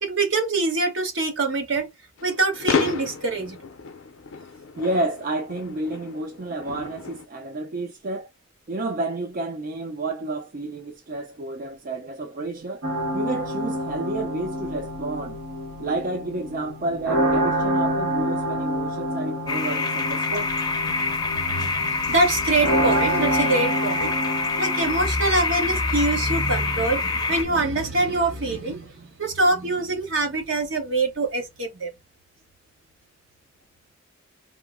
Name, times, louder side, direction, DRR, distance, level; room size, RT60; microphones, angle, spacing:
voice 1, 0.0-1.9 2.2-3.6 20.8-21.1 21.4-24.2 24.6-31.9, right 2 dB, 65° right, 1.0 m, -24 dB
sound 1, 2.2-7.2, left 5 dB, 75° left, 0.5 m, -32 dB
voice 2, 4.7-8.3 8.7-12.8 13.1-15.4 15.8-20.5, right 2 dB, 45° right, 0.4 m, -30 dB
sound 2, 12.8-25.1, right 1 dB, 85° right, 1.3 m, -27 dB
sound 3, 19.5-27.4, left 4 dB, 20° left, 0.5 m, -26 dB
3.6 x 2.0 x 3.5 m
head